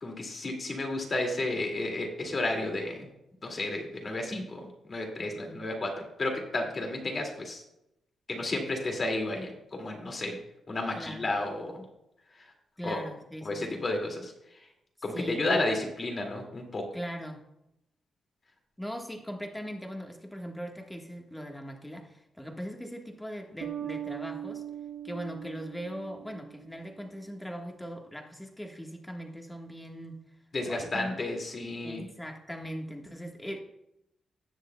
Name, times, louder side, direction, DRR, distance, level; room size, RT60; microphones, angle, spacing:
voice 1, 0.0-3.1 3.4-7.6 8.3-10.4 10.7-11.8 12.3-12.5 12.8-13.0 13.4-14.3 15.0-16.9 30.5-32.0, left 2 dB, 40° left, 2 dB, 2.2 m, -32 dB
voice 2, 10.9-11.3 12.8-13.8 15.1-15.6 16.9-17.4 18.8-24.6 25.0-30.2 30.7-31.2 31.8-33.6, equal, 10° left, 2 dB, 1.4 m, -40 dB
sound 1, 23.6-27.0, right 10 dB, 90° right, 0.9 m, -40 dB
18.5 x 6.5 x 2.2 m, 0.85 s
cardioid pair, 95°, 0 cm